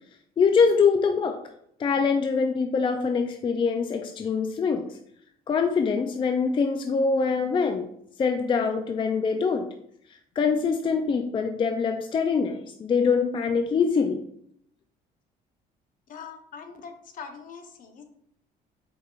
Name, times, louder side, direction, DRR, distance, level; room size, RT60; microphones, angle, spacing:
voice 1, 0.4-1.4 1.8-4.9 5.5-7.9 8.2-9.7 10.4-14.2, left 5 dB, 30° left, 5 dB, 0.4 m, -24 dB
voice 2, 16.1-18.0, left 6 dB, 55° left, 6 dB, 0.8 m, -42 dB
4.7 x 4.7 x 2.4 m, 0.72 s
cardioid pair, 110°, 17 cm